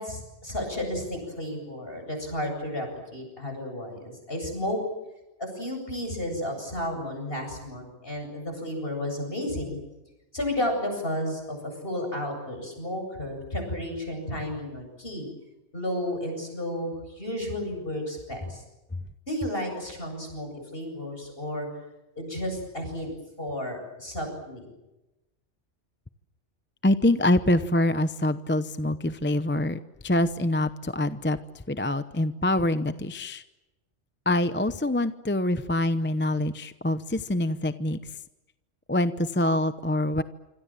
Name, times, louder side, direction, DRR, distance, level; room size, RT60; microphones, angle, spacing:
voice 1, 0.0-4.8 5.4-9.8 10.3-15.3 15.7-18.6 19.3-21.7 22.2-23.1 23.4-24.7, left 1 dB, 50° left, 3 dB, 8.4 m, -32 dB
voice 2, 26.8-33.4 34.3-38.0 38.9-40.2, left 1 dB, 10° left, 12 dB, 0.7 m, -25 dB
26.5 x 26.0 x 7.6 m, 1.0 s
omnidirectional pair, 1.2 m